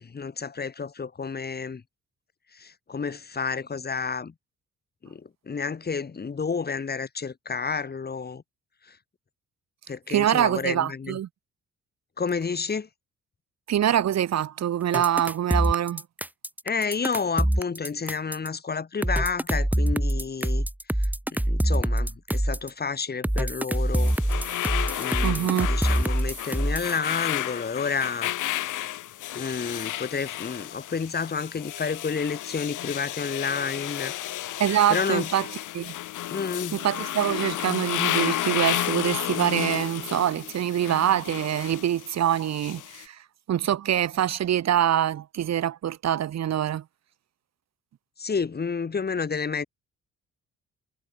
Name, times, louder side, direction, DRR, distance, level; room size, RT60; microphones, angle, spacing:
voice 1, 0.0-1.8 2.5-4.3 5.0-8.4 8.8-9.0 9.9-11.2 12.2-12.9 16.6-20.7 21.0-24.1 25.0-28.6 29.3-34.1 34.5-34.6 34.9-35.3 36.3-36.8 48.2-49.7, left 5 dB, 30° left, 2.2 m, -30 dB
voice 2, 10.1-11.3 13.7-16.0 25.2-25.7 34.6-35.4 35.7-35.9 36.7-43.2 43.5-46.8, right 11 dB, 60° right, 1.4 m, -24 dB
sound 1, 14.9-18.5 19.0-22.7 23.2-27.0, right 1 dB, 5° right, 3.4 m, -25 dB
sound 2, 23.8-43.1, left 14 dB, 80° left, 4.5 m, -32 dB
cardioid pair, 90°, 30 cm